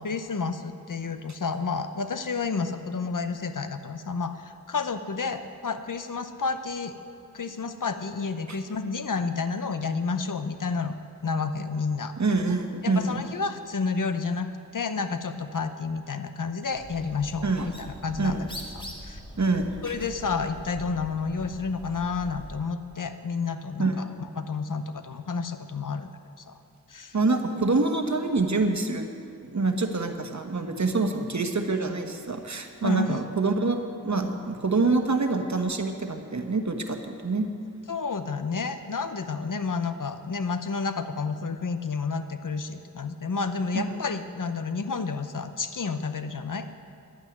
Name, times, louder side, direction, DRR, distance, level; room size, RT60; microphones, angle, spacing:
voice 1, 0.0-6.9 7.3-10.9 11.2-12.1 12.8-18.4 18.7-19.2 19.8-24.1 24.4-26.1 26.4-26.6 26.9-27.2 32.8-33.2 37.9-46.7, left 4 dB, 60° left, 9 dB, 0.8 m, -30 dB
voice 2, 12.2-13.2 17.4-17.7 18.2-18.4 19.4-19.9 23.8-23.9 27.1-29.1 29.4-37.5 43.7-44.0, right 3 dB, 50° right, 5 dB, 1.3 m, -26 dB
Bird, 16.7-22.7, equal, 15° left, 2.1 m, -43 dB
11.0 x 9.2 x 9.3 m, 2.4 s
wide cardioid pair, 45°, 35 cm